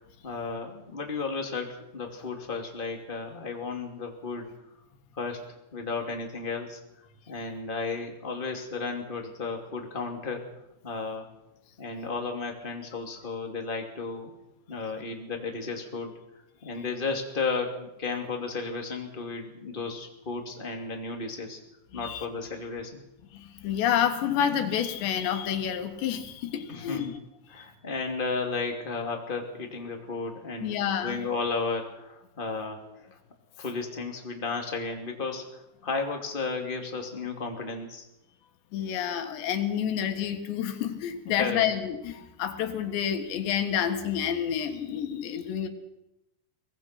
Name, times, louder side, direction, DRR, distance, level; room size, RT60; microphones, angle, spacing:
voice 1, 0.0-4.5 5.1-5.4 5.7-6.8 7.3-10.5 10.8-11.3 11.8-14.3 14.7-16.1 16.6-21.6 21.9-23.0 26.7-27.1 27.5-33.2 33.6-38.0 41.4-41.6, left 4 dB, 15° left, 2 dB, 2.0 m, -33 dB
voice 2, 23.3-27.1 30.6-31.2 38.7-45.7, left 9 dB, 85° left, 7 dB, 3.9 m, -29 dB
23.5 x 19.5 x 6.0 m, 0.87 s
omnidirectional pair, 4.9 m